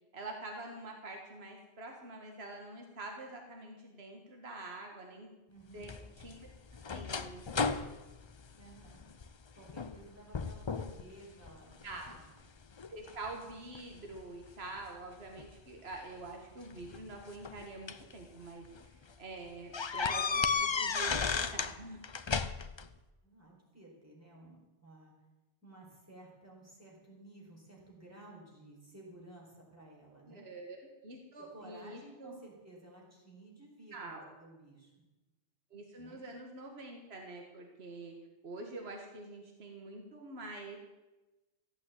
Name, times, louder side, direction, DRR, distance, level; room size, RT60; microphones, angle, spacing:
voice 1, 0.1-5.3 5.7-5.9 6.2-6.4 6.9-7.8 11.8-12.1 12.9-22.0 30.3-30.8 31.0-32.4 33.9-34.3 35.7-38.1 38.4-40.8, right 2 dB, 60° right, 2 dB, 1.9 m, -46 dB
voice 2, 5.5-5.9 8.6-9.0 9.5-12.3 23.2-25.1 25.6-30.5 31.4-34.9 36.0-36.3, right 2 dB, 15° right, -4 dB, 4.4 m, -55 dB
sound 1, 5.8-9.3 9.7-10.0 10.3-11.0 11.4-12.2 12.8-14.2 15.4-15.5 16.7-18.1 18.6-18.8 19.1-19.2 19.7-21.8 22.0-22.9, left 5 dB, 35° left, 0.4 m, -34 dB
15.0 x 8.4 x 8.5 m, 1.1 s
omnidirectional pair, 1.2 m